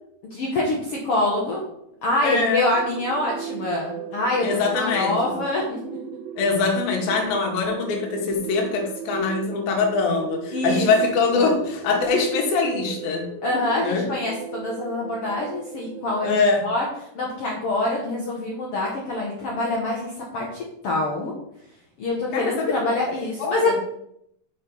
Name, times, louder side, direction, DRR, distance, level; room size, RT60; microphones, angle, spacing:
voice 1, 0.3-1.6 2.0-5.8 10.5-10.9 11.3-11.6 13.4-16.8 17.1-20.5 20.8-21.3 22.0-23.8, left 2 dB, 70° left, -2 dB, 1.4 m, -25 dB
voice 2, 2.2-2.7 4.4-5.3 6.4-13.3 13.8-14.1 16.2-16.7 22.3-22.7 23.4-23.8, left 4 dB, 85° left, 1 dB, 3.1 m, -23 dB
sound 1, 2.7-16.4, right 8 dB, 85° right, 2.7 m, -37 dB
6.6 x 4.5 x 5.2 m, 0.76 s
omnidirectional pair, 4.0 m